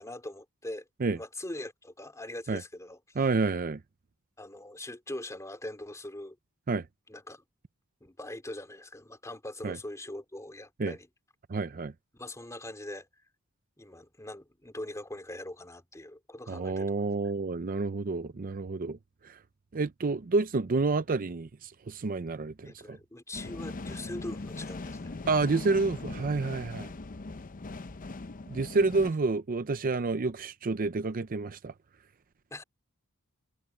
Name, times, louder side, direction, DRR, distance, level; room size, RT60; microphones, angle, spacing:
voice 1, 0.0-0.8 1.2-3.0 4.4-6.4 7.1-7.4 8.0-11.1 12.1-13.1 13.8-17.0 22.6-25.1 32.5-32.6, left 1 dB, 15° left, 3.1 m, -42 dB
voice 2, 3.2-3.8 6.7-6.8 9.6-9.8 10.8-10.9 11.5-11.9 16.5-19.0 19.2-19.4 19.7-23.0 25.3-26.9 28.5-31.7, right 3 dB, 40° right, 0.5 m, -29 dB
sound 1, 23.3-29.1, left 3 dB, 40° left, 0.7 m, -40 dB
head